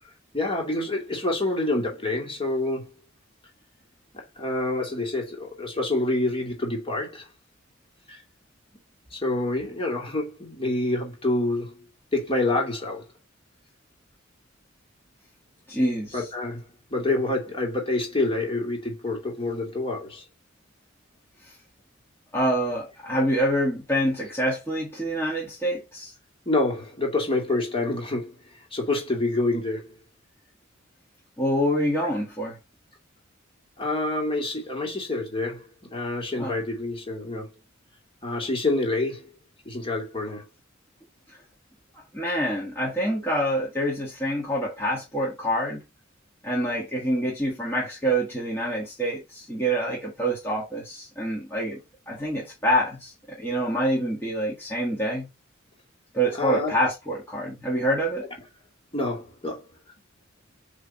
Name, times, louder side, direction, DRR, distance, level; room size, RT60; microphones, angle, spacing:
voice 1, 0.3-2.9 4.1-7.3 8.1-8.2 9.1-11.7 12.1-13.0 16.1-16.6 16.9-20.2 26.5-28.4 28.7-30.0 33.8-35.7 35.9-37.5 38.2-39.3 39.6-40.4 56.4-56.8 58.9-59.6, left 2 dB, 25° left, 2.5 m, -27 dB
voice 2, 15.7-16.3 21.4-21.6 22.3-26.1 31.4-32.6 36.4-36.6 41.3-41.4 42.1-45.8 46.4-51.8 52.1-55.3 56.1-58.3, right 1 dB, 10° left, 1.8 m, -26 dB
8.2 x 3.4 x 4.1 m
head